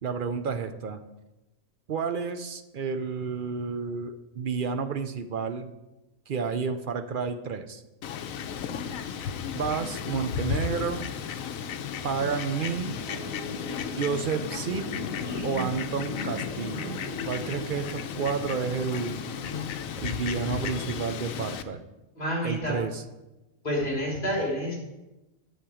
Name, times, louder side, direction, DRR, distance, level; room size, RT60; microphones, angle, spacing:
voice 1, 0.0-1.0 1.9-5.7 6.3-7.8 9.5-11.1 12.0-13.0 13.9-14.9 15.4-17.0 17.2-19.2 20.0-21.8 22.4-23.0, right 5 dB, 55° right, 9 dB, 0.6 m, -30 dB
Fowl, 8.0-21.6, left 7 dB, 85° left, 1.1 m, -34 dB
sound 1, 12.9-19.7, right 1 dB, 35° right, 2.1 m, -39 dB
voice 2, 22.2-22.7 23.6-24.8, equal, 35° left, -3 dB, 3.5 m, -28 dB
10.5 x 7.4 x 4.9 m, 1.0 s
omnidirectional pair, 1.4 m